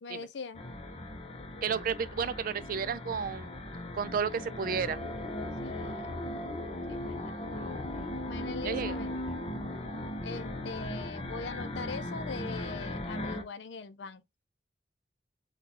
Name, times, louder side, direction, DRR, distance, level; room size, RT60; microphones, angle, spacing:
voice 1, 0.0-0.6 5.6-6.1 6.9-7.4 8.2-9.2 10.2-14.2, left 4 dB, 80° left, 0.5 m, -41 dB
sound 1, 0.5-13.4, left 1 dB, 35° left, 0.7 m, -38 dB
voice 2, 1.6-3.6 3.9-5.0 8.6-9.0, right 6 dB, 55° right, 0.4 m, -32 dB
3.7 x 2.3 x 2.8 m
head